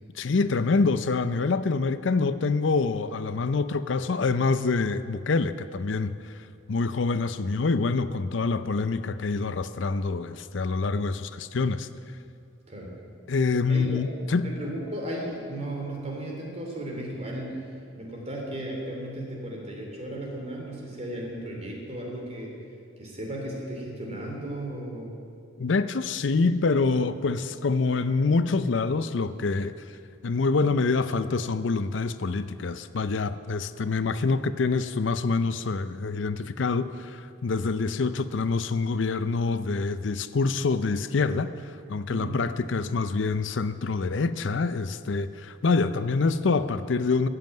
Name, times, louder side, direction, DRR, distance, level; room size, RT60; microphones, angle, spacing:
voice 1, 0.2-6.3 6.7-11.9 13.3-14.5 25.6-29.7 30.2-41.5 41.9-47.3, left 4 dB, 65° left, 13 dB, 0.5 m, -26 dB
voice 2, 13.7-14.1 14.4-17.6 17.9-22.5 23.0-25.1 42.1-42.4, right 1 dB, 35° right, -1 dB, 3.0 m, -35 dB
14.5 x 7.6 x 9.1 m, 2.4 s
head